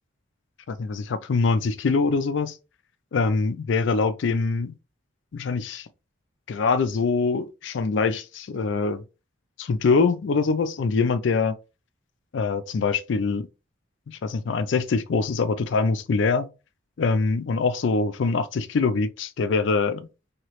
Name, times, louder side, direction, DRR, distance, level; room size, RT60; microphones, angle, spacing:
voice 1, 0.7-2.5 3.1-4.7 5.3-5.9 6.5-9.0 9.6-11.6 12.3-13.5 14.1-16.5 17.0-20.1, left 4 dB, 65° left, 0.4 m, -24 dB
3.0 x 2.8 x 2.9 m
head